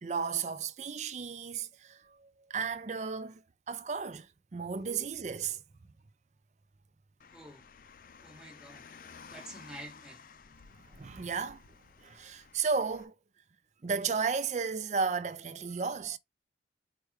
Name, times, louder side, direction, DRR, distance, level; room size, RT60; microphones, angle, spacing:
voice 1, 0.0-5.6 10.7-11.6 12.0-13.1 13.8-16.2, right 5 dB, 40° right, 0.4 m, -34 dB
voice 2, 4.7-5.1 7.3-7.7 8.2-8.9 9.2-10.3, right 1 dB, 5° right, 1.1 m, -49 dB
Car, 7.2-13.0, left 6 dB, 50° left, 0.4 m, -54 dB
4.9 x 2.2 x 4.7 m
head